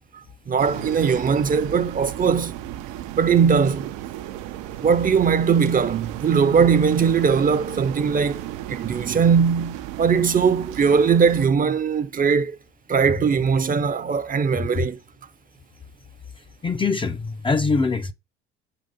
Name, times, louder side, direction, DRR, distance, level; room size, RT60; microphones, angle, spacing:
voice 1, 0.1-2.5 3.2-3.9 4.8-8.4 8.7-12.6 12.9-15.0, right 6 dB, 25° right, 0.6 m, -20 dB
sound 1, 0.6-11.5, right 13 dB, 65° right, 0.6 m, -34 dB
voice 2, 16.6-18.1, left 4 dB, 15° left, 0.5 m, -23 dB
5.1 x 4.0 x 5.0 m
hypercardioid pair, 70°, 32 cm